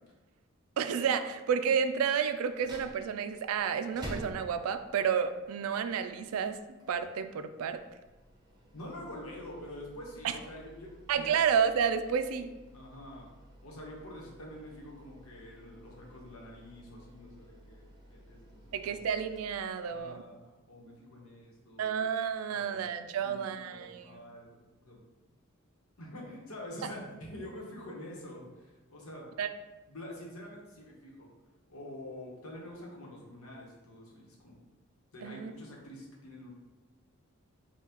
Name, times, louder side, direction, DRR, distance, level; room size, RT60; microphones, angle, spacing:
voice 1, 0.8-6.6 6.9-7.8 10.2-10.3 11.1-12.5 18.7-20.2 21.8-24.2 29.4-29.5 35.2-35.5, right 7 dB, 80° right, 10 dB, 0.3 m, -30 dB
sound 1, 2.5-20.2, equal, 20° right, 0.7 m, -52 dB
voice 2, 8.7-11.4 12.7-13.3 13.6-19.0 19.8-22.0 22.5-22.9 23.2-24.5 24.8-25.0 26.0-29.3 29.9-31.3 31.7-34.6 35.1-36.5, left 1 dB, 90° left, -2 dB, 1.1 m, -46 dB
5.5 x 2.3 x 2.9 m, 1.1 s
head